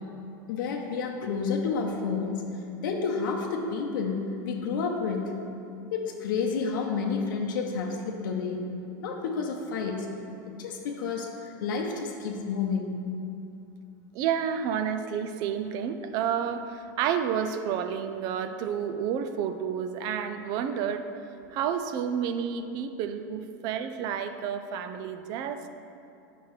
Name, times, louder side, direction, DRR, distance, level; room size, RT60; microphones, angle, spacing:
voice 1, 0.5-2.4 2.8-5.2 5.9-8.6 9.0-10.0 10.6-11.3 11.6-12.9, left 5 dB, 75° left, 1 dB, 0.8 m, -30 dB
voice 2, 14.1-21.0 21.5-25.7, right 8 dB, 35° right, 9 dB, 0.4 m, -30 dB
9.3 x 5.9 x 3.1 m, 2.6 s
supercardioid pair, 160°, 11 cm